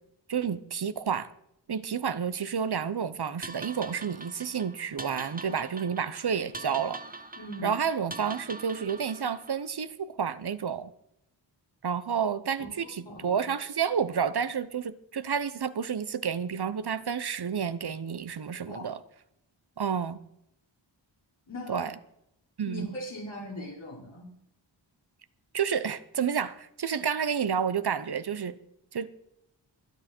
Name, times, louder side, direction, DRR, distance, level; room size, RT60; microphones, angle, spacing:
voice 1, 0.3-1.3 1.7-7.0 7.6-10.9 11.8-19.0 19.8-20.2 21.7-21.9 22.6-22.9 25.5-28.5 28.9-29.1, right 7 dB, 55° right, 0.9 m, -30 dB
sound 1, 3.4-9.7, right 2 dB, 20° right, 1.0 m, -43 dB
voice 2, 7.4-7.7 12.6-13.3 18.5-18.9 21.5-21.9 22.6-24.3, left 1 dB, 80° left, 5.4 m, -40 dB
22.0 x 8.7 x 4.5 m
cardioid pair, 45°, 46 cm